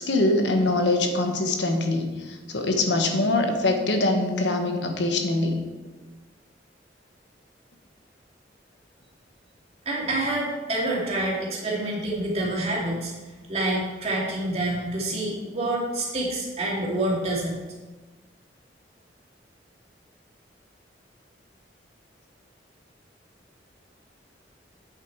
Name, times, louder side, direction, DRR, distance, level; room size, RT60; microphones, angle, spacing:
voice 1, 0.0-5.6, left 2 dB, 75° left, 4 dB, 1.2 m, -23 dB
voice 2, 9.9-13.1 13.5-17.6, right 1 dB, 35° right, -4 dB, 2.4 m, -27 dB
8.3 x 7.7 x 4.6 m, 1.3 s
head